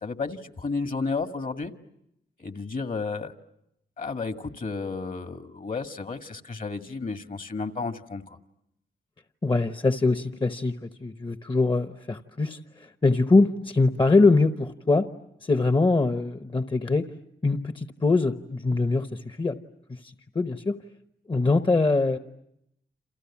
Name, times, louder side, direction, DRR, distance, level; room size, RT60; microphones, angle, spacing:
voice 1, 0.0-1.7 2.4-3.3 4.0-8.2, left 4 dB, 50° left, 7 dB, 1.9 m, -32 dB
voice 2, 9.4-15.1 15.4-17.1 17.4-19.6 19.9-20.8 21.3-22.2, left 3 dB, 30° left, 9 dB, 1.0 m, -23 dB
29.5 x 27.5 x 7.2 m, 0.80 s
cardioid pair, 60°, 18 cm